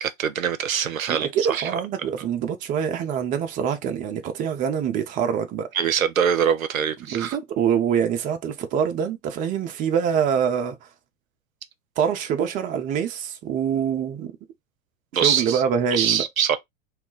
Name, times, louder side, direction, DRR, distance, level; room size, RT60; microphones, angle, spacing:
voice 1, 0.0-1.7 5.7-7.4 15.1-15.6 15.9-16.6, right 8 dB, 90° right, 0.5 m, -23 dB
voice 2, 1.1-5.7 7.1-10.8 12.0-14.4 15.2-16.2, right 8 dB, 20° right, 0.4 m, -25 dB
2.4 x 2.2 x 3.6 m
figure-of-eight pair, 90°, 40 cm